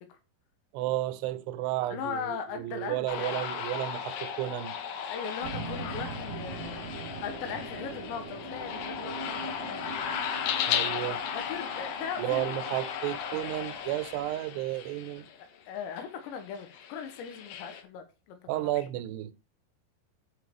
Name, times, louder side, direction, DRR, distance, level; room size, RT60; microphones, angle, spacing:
voice 1, 0.7-4.8 10.7-11.2 12.2-15.3 18.5-19.3, right 15 dB, 80° right, 2.7 m, -32 dB
voice 2, 1.9-3.4 5.1-6.9 7.2-9.9 11.3-12.6 15.3-18.8, left 7 dB, 90° left, 3.5 m, -39 dB
sound 1, 3.1-15.3 16.0-17.8, left 8 dB, 65° left, 2.4 m, -36 dB
sound 2, 5.4-14.3, right 4 dB, 25° right, 1.6 m, -43 dB
11.0 x 5.4 x 4.5 m
omnidirectional pair, 5.0 m